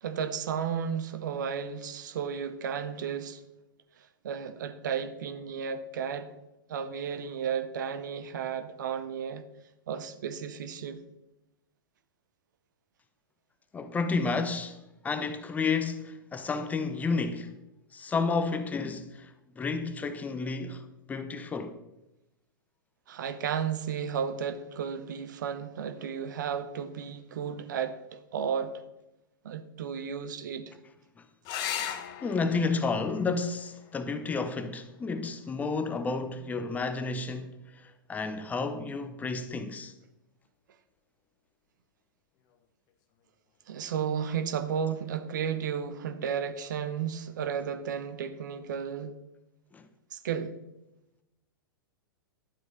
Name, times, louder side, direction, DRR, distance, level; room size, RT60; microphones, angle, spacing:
voice 1, 0.0-3.4 4.0-6.3 6.7-9.4 9.9-11.0 23.1-28.8 29.4-30.7 43.7-49.1 50.1-50.6, right 7 dB, 55° right, 1.0 m, -33 dB
voice 2, 13.7-17.5 17.9-21.8 32.2-39.9 49.7-49.9, left 4 dB, 15° left, 0.7 m, -31 dB
sound 1, 31.4-36.5 38.4-39.0 42.5-42.6 42.9-43.0, left 9 dB, 30° left, 1.0 m, -40 dB
11.5 x 8.0 x 5.2 m
figure-of-eight pair, 105°, 12 cm